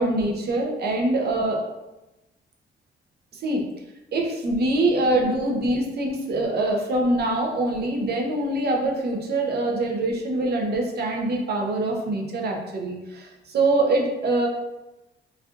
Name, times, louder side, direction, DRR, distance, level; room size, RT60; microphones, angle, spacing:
voice 1, 0.0-1.6 3.4-3.6 4.1-14.5, right 2 dB, 55° right, 1 dB, 0.7 m, -24 dB
3.2 x 2.4 x 2.5 m, 0.99 s
cardioid pair, 90°, 20 cm